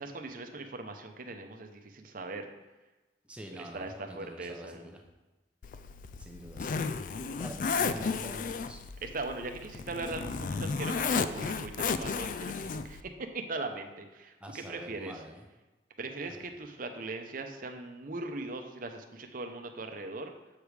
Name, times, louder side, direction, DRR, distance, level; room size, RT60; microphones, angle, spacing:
voice 1, 0.0-2.5 3.5-4.9 9.0-15.2 16.0-20.3, right 3 dB, 50° right, 5 dB, 0.8 m, -40 dB
voice 2, 3.2-5.0 6.2-6.7 7.0-8.8 14.4-15.4 16.3-16.4, equal, 5° right, 1 dB, 0.7 m, -46 dB
Zipper (clothing), 5.6-13.0, left 5 dB, 45° left, 0.3 m, -33 dB
7.7 x 5.1 x 4.9 m, 1.1 s
head